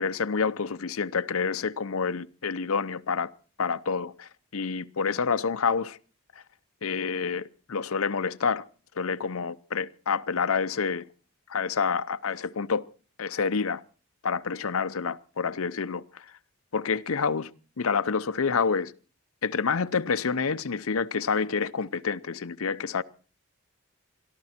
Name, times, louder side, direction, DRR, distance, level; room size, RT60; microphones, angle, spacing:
voice 1, 0.0-3.3 3.6-6.0 6.8-8.6 9.0-11.1 11.5-12.8 13.2-13.8 14.2-16.3 16.7-17.5 17.8-18.9 19.4-23.0, left 5 dB, 75° left, 0.7 m, -28 dB
23.0 x 13.5 x 4.3 m
head